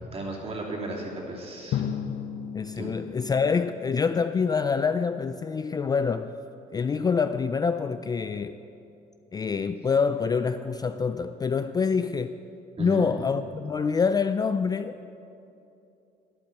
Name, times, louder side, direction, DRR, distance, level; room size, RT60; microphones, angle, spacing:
voice 1, 0.1-1.8 2.7-2.9 12.8-13.1, right 2 dB, 35° right, 2.9 m, -35 dB
Drum, 1.7-4.4, left 8 dB, 65° left, 0.9 m, -34 dB
voice 2, 2.5-6.3 6.7-8.6 9.3-12.4 12.8-15.0, left 5 dB, 25° left, 0.3 m, -26 dB
12.0 x 10.5 x 7.0 m
cardioid pair, 110°, 17 cm